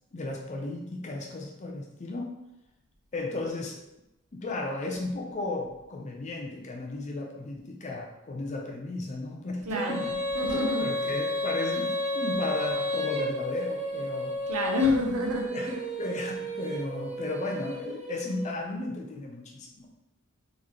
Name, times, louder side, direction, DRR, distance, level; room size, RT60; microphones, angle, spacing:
voice 1, 0.1-2.3 3.1-3.8 4.3-10.2 10.8-14.3 15.5-19.9, left 2 dB, 30° left, 1 dB, 0.4 m, -35 dB
voice 2, 9.6-10.0 10.3-10.9 14.5-15.5, left 2 dB, 80° right, 1 dB, 0.7 m, -27 dB
Female singing, 9.7-18.5, left 1 dB, 30° right, 0.6 m, -32 dB
4.0 x 3.1 x 2.8 m, 0.92 s
head